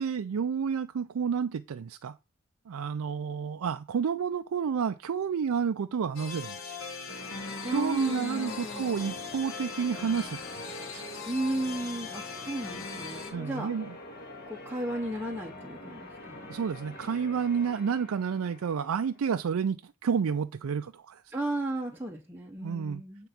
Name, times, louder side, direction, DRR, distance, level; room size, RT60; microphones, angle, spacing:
voice 1, 0.0-2.2 2.7-6.8 7.4-11.0 13.3-13.9 16.5-21.2 22.6-23.3, right 6 dB, 75° right, 0.4 m, -30 dB
sound 1, 6.1-13.3, left 4 dB, 70° left, 1.9 m, -40 dB
Church bell, 7.1-19.3, left 2 dB, 45° left, 1.9 m, -45 dB
voice 2, 7.6-9.2 11.3-13.7 14.5-16.5 21.3-23.3, right 1 dB, 10° right, 0.7 m, -34 dB
9.1 x 3.8 x 5.8 m
head